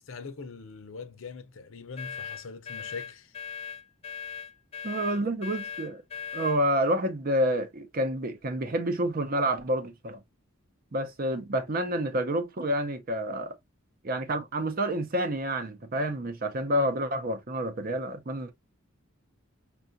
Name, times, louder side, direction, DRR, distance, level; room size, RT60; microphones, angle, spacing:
voice 1, 0.1-3.3, left 4 dB, 70° left, 0.6 m, -42 dB
sound 1, 2.0-6.6, left 7 dB, 30° left, 0.7 m, -39 dB
voice 2, 4.8-6.0 6.3-10.2 10.9-13.6 14.0-18.5, right 1 dB, 45° right, 0.6 m, -28 dB
5.6 x 2.4 x 2.5 m
head